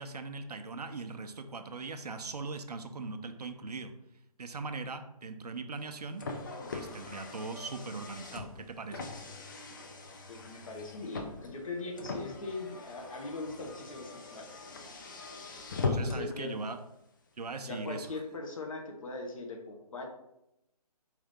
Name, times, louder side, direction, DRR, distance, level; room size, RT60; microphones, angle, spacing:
voice 1, 0.0-3.9 4.4-6.2 6.7-9.1 15.8-16.8 17.4-18.2, right 3 dB, 80° right, 7 dB, 0.6 m, -40 dB
Car, 5.7-16.4, left 3 dB, 30° left, 0.5 m, -40 dB
voice 2, 10.3-14.6 16.0-16.5 17.6-20.1, left 3 dB, 55° left, 1 dB, 1.0 m, -40 dB
4.8 x 2.7 x 3.5 m, 0.84 s
figure-of-eight pair, 150°, 20 cm